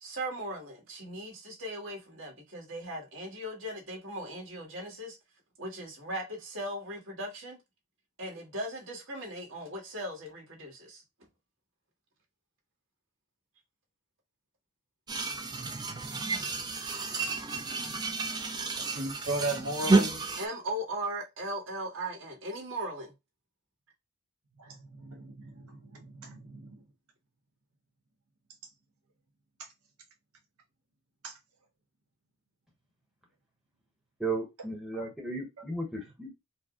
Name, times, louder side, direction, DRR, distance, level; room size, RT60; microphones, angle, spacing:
voice 1, 0.0-5.2 5.6-7.6 8.2-11.0 20.4-23.1, right 1 dB, 60° right, 1.7 m, -38 dB
sound 1, 15.1-20.5, right 3 dB, 20° right, 0.4 m, -30 dB
voice 2, 18.8-20.2 24.6-26.8 31.2-31.4 34.9-35.1, right 1 dB, 85° right, 1.3 m, -37 dB
voice 3, 34.2-36.3, right 2 dB, ahead, 0.9 m, -35 dB
4.5 x 2.0 x 3.7 m
head